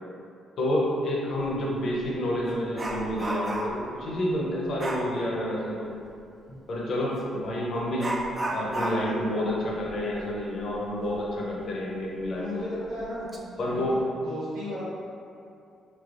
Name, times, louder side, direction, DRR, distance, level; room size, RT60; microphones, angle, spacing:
voice 1, 0.6-5.9 6.7-8.1 8.5-12.6 13.6-13.9, left 1 dB, 60° left, -4 dB, 0.7 m, -29 dB
Dog, 1.4-1.6 2.0-3.9 4.8-5.1 7.1-7.3 8.0-11.3 11.6-11.7 12.2-12.3 13.0-13.4 13.7-14.0, right 1 dB, 30° right, 0.3 m, -33 dB
voice 2, 12.3-14.8, left 1 dB, 90° right, -11 dB, 1.4 m, -35 dB
3.2 x 2.8 x 2.5 m, 2.4 s
cardioid pair, 90°, 0 cm